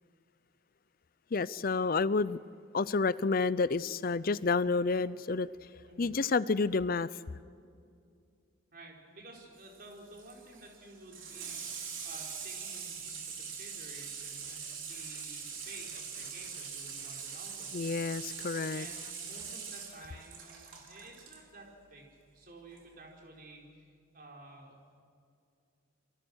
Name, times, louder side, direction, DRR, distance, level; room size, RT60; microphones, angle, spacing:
voice 1, 1.3-2.4 2.7-5.5 6.0-7.1 17.7-18.9, left 4 dB, 45° left, 0.5 m, -29 dB
voice 2, 8.7-17.7 18.7-22.1 22.3-24.7, right 2 dB, 45° right, 4.7 m, -52 dB
Water tap faucet / Sink (filling or washing), 9.6-21.4 22.7-22.8, right 6 dB, 65° right, 4.1 m, -43 dB
28.5 x 24.0 x 6.3 m
head